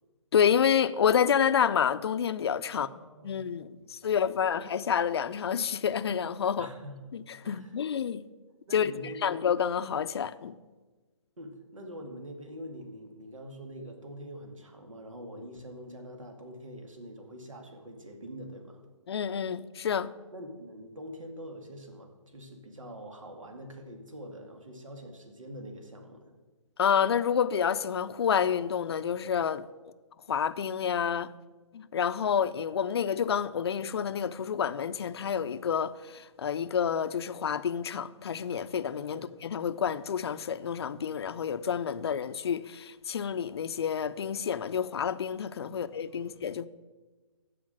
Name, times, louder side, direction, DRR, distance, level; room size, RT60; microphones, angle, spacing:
voice 1, 0.3-2.9 3.2-6.7 7.1-8.2 8.7-8.9 9.2-10.6 19.1-20.1 26.8-29.7 30.3-31.3 31.7-46.7, left 7 dB, 55° left, 0.5 m, -29 dB
voice 2, 2.7-3.4 3.8-4.6 6.6-7.1 7.4-7.8 8.7-9.3 11.4-18.8 20.3-26.3 39.1-39.3 45.7-46.3, equal, 80° right, 2.3 m, -45 dB
14.5 x 5.1 x 7.7 m
hypercardioid pair, 145°, 16 cm